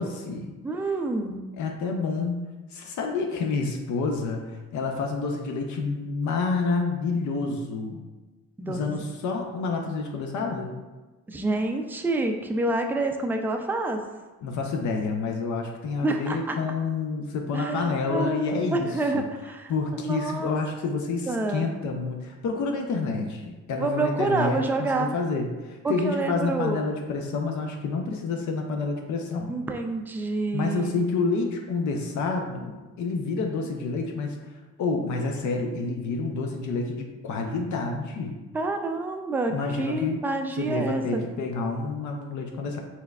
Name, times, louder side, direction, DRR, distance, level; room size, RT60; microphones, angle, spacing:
voice 1, 0.0-0.5 1.6-8.0 8.7-10.8 14.4-19.2 19.7-24.6 24.9-29.5 30.5-34.4 34.8-38.4 39.5-40.2 40.5-42.8, left 4 dB, 70° left, 2 dB, 0.5 m, -28 dB
voice 2, 0.6-1.5 8.6-8.8 11.3-14.0 16.0-16.6 17.5-20.5 21.3-21.8 23.8-25.1 25.8-26.8 29.5-31.0 38.5-41.2, right 2 dB, 5° right, 4 dB, 0.3 m, -28 dB
4.5 x 3.4 x 2.3 m, 1.2 s
cardioid pair, 90°, 30 cm